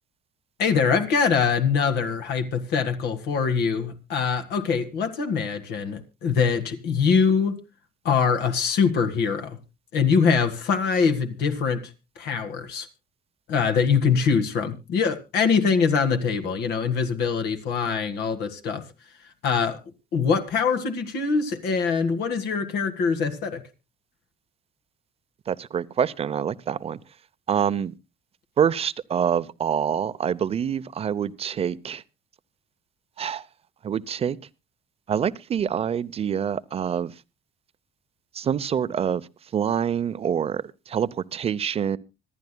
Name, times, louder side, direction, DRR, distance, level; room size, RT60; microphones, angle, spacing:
voice 1, 0.6-7.6 8.1-9.6 9.9-11.8 12.2-12.9 13.5-18.8 19.4-19.8 20.1-23.6, left 6 dB, 75° left, 1.9 m, -23 dB
voice 2, 25.5-27.0 27.5-27.9 28.6-32.0 33.2-33.5 33.8-34.4 35.1-37.1 38.3-42.0, right 8 dB, 35° right, 0.6 m, -26 dB
25.5 x 10.5 x 2.2 m
cardioid pair, 110°, 17 cm